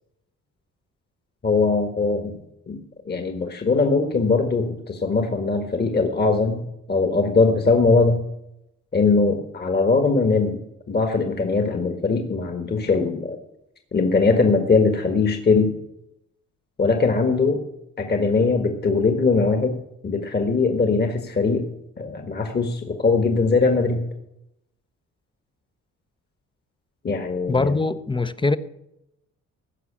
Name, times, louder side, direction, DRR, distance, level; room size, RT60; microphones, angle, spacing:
voice 1, 1.4-2.4 2.7-2.8 3.1-6.6 6.9-8.2 8.9-13.4 13.9-15.8 16.8-17.6 18.0-19.8 20.0-21.7 22.0-24.0 27.0-27.8, left 4 dB, 35° left, 1.6 m, -21 dB
voice 2, 27.5-28.6, left 3 dB, 15° left, 0.7 m, -22 dB
15.5 x 5.8 x 8.7 m
cardioid pair, 90°, 30 cm